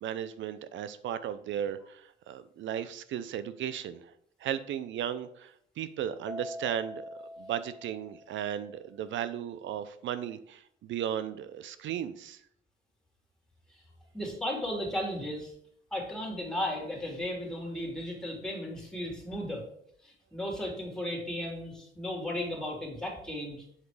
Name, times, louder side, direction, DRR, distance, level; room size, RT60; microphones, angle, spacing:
voice 1, 0.0-4.1 4.4-12.4, right 10 dB, 75° right, 13 dB, 0.6 m, -36 dB
Mallet percussion, 6.3-8.7, left 1 dB, 20° right, 0.7 m, -44 dB
voice 2, 14.1-15.5 15.9-19.6 20.0-23.6, left 1 dB, 5° left, -1 dB, 2.9 m, -35 dB
7.5 x 4.0 x 4.8 m, 0.68 s
cardioid pair, 90°, 20 cm